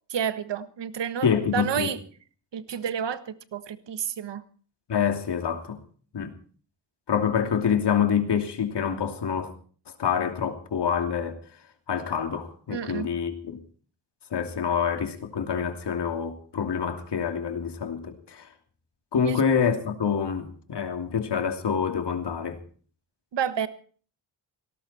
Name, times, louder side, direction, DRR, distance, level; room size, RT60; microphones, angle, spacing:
voice 1, 0.1-2.0 2.5-4.4 12.7-13.1 19.2-19.4 23.3-23.7, right 8 dB, 75° right, 1.5 m, -30 dB
voice 2, 1.2-1.9 4.9-5.8 6.1-6.3 7.1-9.5 10.0-11.4 11.9-13.6 14.3-18.5 19.1-22.6, left 7 dB, 70° left, 2.9 m, -26 dB
18.0 x 17.5 x 4.3 m
cardioid pair, 85°, 43 cm